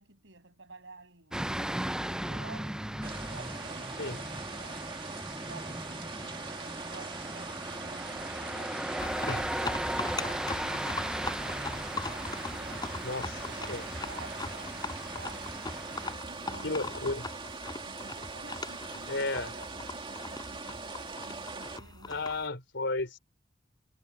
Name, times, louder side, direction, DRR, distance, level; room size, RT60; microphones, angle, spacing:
voice 1, 0.0-1.8 2.3-4.9 5.3-11.2 12.0-17.1 17.8-22.3, right 3 dB, 75° right, 6.9 m, -52 dB
sound 1, 1.3-16.1, right 1 dB, 5° right, 0.4 m, -37 dB
sound 2, 3.0-21.8, right 3 dB, 30° right, 2.2 m, -41 dB
sound 3, 9.0-22.5, left 3 dB, 25° left, 4.8 m, -41 dB
voice 2, 16.6-17.2 19.1-19.5 22.1-23.2, left 2 dB, 65° left, 4.4 m, -33 dB
head